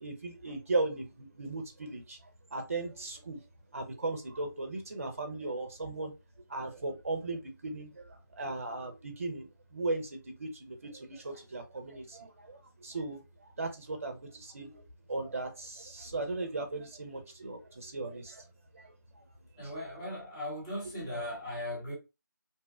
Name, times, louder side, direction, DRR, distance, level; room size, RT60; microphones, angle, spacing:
voice 1, 0.0-3.4 3.7-6.1 6.5-18.5 18.7-19.2 19.6-19.7, right 2 dB, 40° right, 0.5 m, -37 dB
voice 2, 19.6-21.9, left 1 dB, 15° left, 0.7 m, -38 dB
2.6 x 2.1 x 2.3 m
figure-of-eight pair, 160°, 11 cm